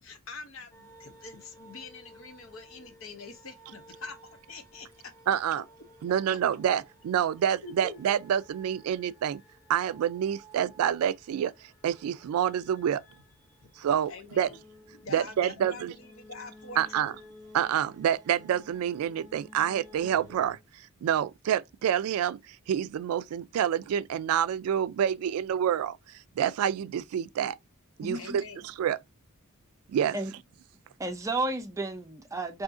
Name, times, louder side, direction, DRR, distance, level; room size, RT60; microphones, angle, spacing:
voice 1, 0.0-4.9 7.1-7.2 7.6-8.0 12.8-13.0 14.1-14.6 14.9-17.1 28.1-28.7, left 3 dB, 65° left, 0.8 m, -45 dB
sound 1, 0.7-20.6, equal, 15° left, 0.8 m, -55 dB
voice 2, 5.3-5.6 6.0-9.4 9.7-11.5 11.8-13.0 13.8-14.1 14.4-14.5 15.1-15.9 16.8-17.1 17.5-20.6 21.0-26.0 26.4-27.6 28.0-28.4 28.8-29.0 29.9-30.2, right 9 dB, 90° right, 0.3 m, -27 dB
voice 3, 28.0-28.4 30.1-30.3 31.0-32.6, right 2 dB, 15° right, 0.5 m, -32 dB
2.7 x 2.5 x 3.6 m
head